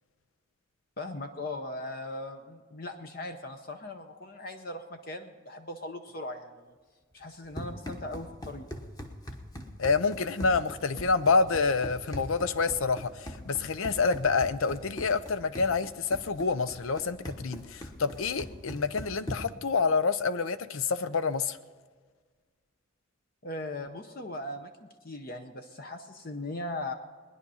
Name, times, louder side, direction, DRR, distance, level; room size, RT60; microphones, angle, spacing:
voice 1, 1.0-6.7 7.1-8.7 23.4-26.9, left 2 dB, 45° left, 0.7 m, -39 dB
Run, 7.2-19.7, left 1 dB, 20° left, 1.1 m, -42 dB
voice 2, 9.8-21.6, left 4 dB, 80° left, 0.7 m, -27 dB
20.0 x 10.5 x 5.6 m
head